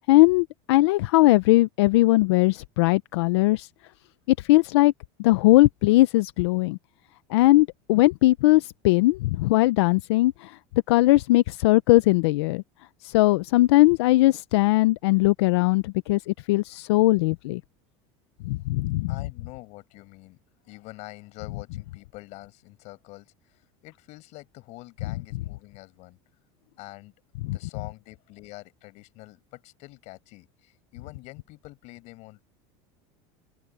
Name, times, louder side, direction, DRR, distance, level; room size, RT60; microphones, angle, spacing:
voice 1, 0.0-3.7 4.3-4.9 5.2-6.8 7.3-10.6 10.9-12.6 13.0-17.6 18.5-19.1 27.4-27.6, left 18 dB, 85° left, 0.6 m, -20 dB
voice 2, 19.1-20.4 20.6-26.2 26.8-27.1 27.5-32.4, left 21 dB, 55° left, 6.6 m, -45 dB
open air
supercardioid pair, 135°, 14 cm